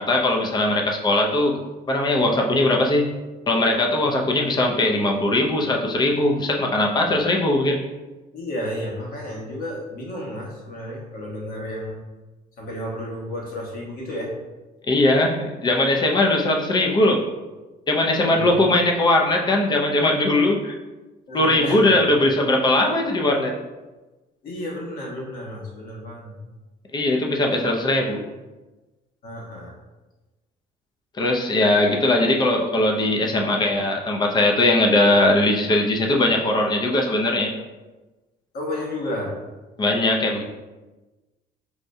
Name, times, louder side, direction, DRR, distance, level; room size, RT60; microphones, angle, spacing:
voice 1, 0.0-3.1 3.5-7.8 14.9-17.2 17.9-20.8 21.3-23.5 26.9-28.2 31.2-37.5 39.8-40.4, left 1 dB, 25° left, 1 dB, 0.5 m, -20 dB
voice 2, 8.3-12.0 12.6-14.3 18.1-18.5 21.3-21.9 24.4-26.4 27.6-27.7 29.2-29.7 38.5-39.3, left 1 dB, 60° left, -3 dB, 1.2 m, -32 dB
4.8 x 2.2 x 2.7 m, 1.2 s
cardioid pair, 110°, 17 cm